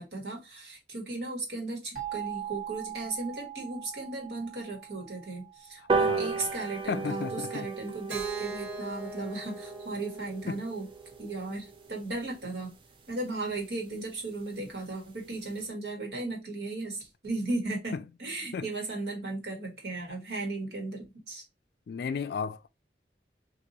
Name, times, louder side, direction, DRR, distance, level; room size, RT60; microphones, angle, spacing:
voice 1, 0.0-10.8 11.2-12.7 13.1-21.4, right 2 dB, 65° right, 1.5 m, -36 dB
sound 1, 1.9-6.7, right 11 dB, 45° right, 1.4 m, -41 dB
voice 2, 5.9-6.5 6.9-7.7 10.5-10.6 17.9-18.0 18.5-18.7 21.9-22.7, left 5 dB, 60° left, 0.3 m, -34 dB
sound 2, 5.9-12.6 13.1-13.2 13.5-13.6 13.9-14.0 14.3-14.4 14.6-14.9 15.3-15.4, right 4 dB, 30° right, 0.4 m, -34 dB
Keyboard (musical), 8.1-12.0, right 4 dB, 90° right, 1.1 m, -41 dB
2.7 x 2.6 x 3.9 m
head